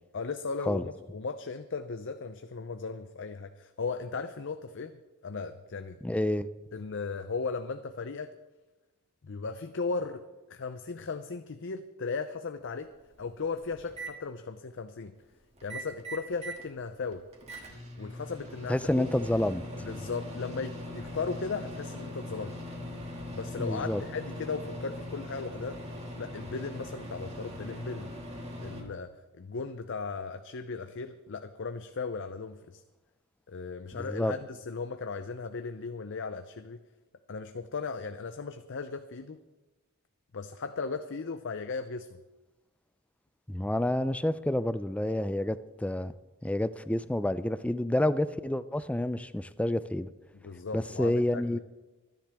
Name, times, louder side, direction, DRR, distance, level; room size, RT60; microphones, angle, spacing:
voice 1, 0.1-5.0 5.2-6.0 6.7-8.3 9.2-12.9 13.2-15.1 15.6-17.2 18.0-19.0 19.9-22.6 23.3-25.8 26.1-28.1 28.6-32.8 33.5-36.8 37.3-39.4 40.3-42.2 50.4-51.6, left 4 dB, 55° left, 9 dB, 0.6 m, -37 dB
voice 2, 6.0-6.5 18.7-19.6 23.6-24.0 33.9-34.3 43.5-46.1 46.4-50.1 50.7-51.6, left 1 dB, 5° left, 14 dB, 0.4 m, -29 dB
Microwave oven, 13.1-14.1 15.6-16.7 17.0-28.8, left 1 dB, 30° right, 2.5 m, -41 dB
24.5 x 10.5 x 3.5 m, 1.1 s
head